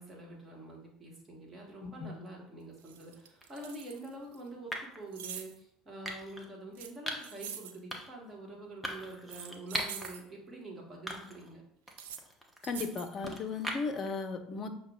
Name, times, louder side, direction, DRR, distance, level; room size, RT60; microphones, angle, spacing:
voice 1, 0.0-11.6, right 2 dB, 25° right, -2 dB, 1.5 m, -46 dB
sound 1, 2.3-2.4 2.8-4.4 5.1-5.6 6.7-7.8 9.1-10.2 11.9-12.2 12.6-13.1, right 8 dB, 65° right, 0.4 m, -45 dB
sound 2, 3.4-3.6 4.7-5.0 6.0-6.5 7.1-7.4 7.9-8.2 8.8-10.1 10.5-10.6 11.1-11.5 11.9-14.1, equal, 5° right, 0.9 m, -40 dB
voice 2, 12.6-14.7, left 4 dB, 35° left, 7 dB, 0.6 m, -36 dB
6.4 x 2.2 x 3.6 m, 0.71 s
figure-of-eight pair, 65°, 0 cm